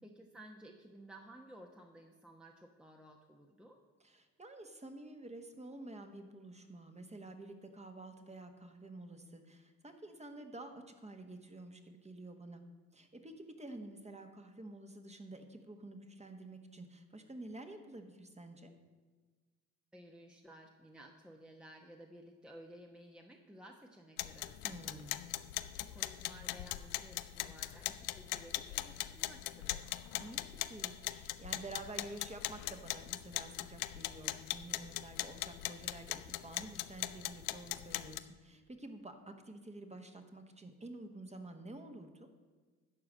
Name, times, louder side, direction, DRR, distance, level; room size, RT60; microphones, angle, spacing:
voice 1, 0.0-3.8 19.9-25.3 25.6-30.0, right 1 dB, ahead, 2 dB, 1.0 m, -56 dB
voice 2, 4.0-12.6 12.9-18.7 24.6-25.2 30.1-42.3, right 2 dB, 20° right, 6 dB, 1.4 m, -50 dB
sound 1, 24.2-38.2, left 16 dB, 80° left, 0.5 m, -40 dB
12.0 x 4.7 x 7.5 m, 1.4 s
supercardioid pair, 60°, 36 cm